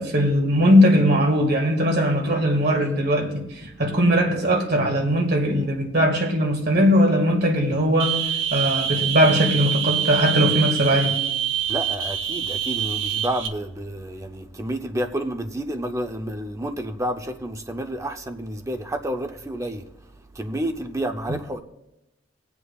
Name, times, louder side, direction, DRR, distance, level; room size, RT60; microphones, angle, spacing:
voice 1, 0.0-3.5 3.8-8.2 8.5-11.1, equal, 60° right, 1.8 m, -19 dB
sound 1, 8.0-13.5, right 10 dB, 85° right, 0.8 m, -25 dB
voice 2, 11.7-19.9 20.3-21.6, right 1 dB, 15° right, 0.6 m, -30 dB
20.5 x 8.0 x 2.4 m
head